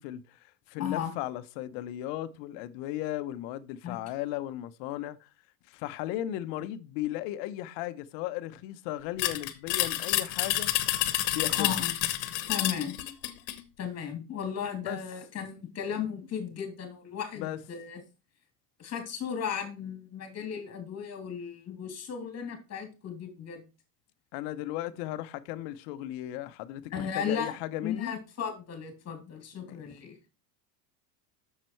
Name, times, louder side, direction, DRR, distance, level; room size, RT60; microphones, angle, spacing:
voice 1, 0.0-5.3 5.7-10.7 11.3-11.7 14.8-15.0 17.3-17.6 24.3-28.1 29.6-29.9, left 14 dB, 60° left, 0.9 m, -36 dB
voice 2, 0.8-1.1 3.8-4.0 11.6-11.9 12.5-12.9 13.8-18.0 18.8-23.6 26.9-27.5 27.8-30.1, left 7 dB, 30° left, 3.0 m, -35 dB
sound 1, 9.2-13.6, left 14 dB, 80° left, 1.2 m, -29 dB
7.5 x 6.8 x 4.5 m
supercardioid pair, 115°, 48 cm